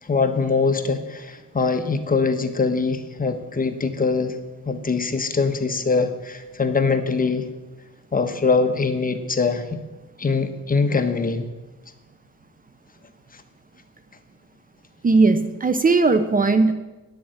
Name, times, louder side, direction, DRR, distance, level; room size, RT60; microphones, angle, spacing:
voice 1, 0.0-4.4 4.6-7.5 8.1-9.8 10.2-11.5, left 4 dB, 30° left, 7 dB, 1.3 m, -23 dB
voice 2, 15.0-16.7, right 3 dB, 30° right, 11 dB, 0.8 m, -18 dB
10.0 x 7.1 x 9.0 m, 1.1 s
cardioid pair, 90°, 30 cm